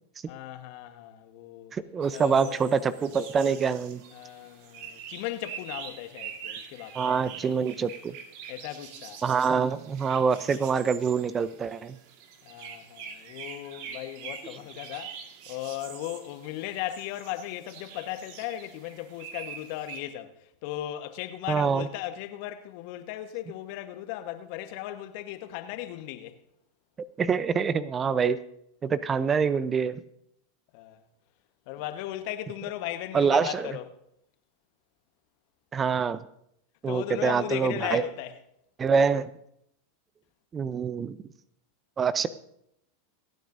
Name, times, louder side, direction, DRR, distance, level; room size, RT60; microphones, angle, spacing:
voice 1, 0.3-1.7 2.1-2.7 4.1-7.1 8.5-9.2 12.4-15.1 15.5-26.4 30.7-31.0 31.7-34.0 36.9-38.4, left 13 dB, 55° left, 1.2 m, -37 dB
voice 2, 1.7-4.0 7.0-8.2 9.2-12.0 21.5-21.9 27.2-28.4 28.8-30.0 33.1-33.8 35.7-36.2 36.8-38.0 38.8-39.3 40.5-41.2 42.0-42.3, right 6 dB, 25° right, 0.6 m, -25 dB
sound 1, 2.0-20.0, right 7 dB, 55° right, 1.7 m, -45 dB
27.5 x 9.2 x 2.6 m
hypercardioid pair, 90°, 0 cm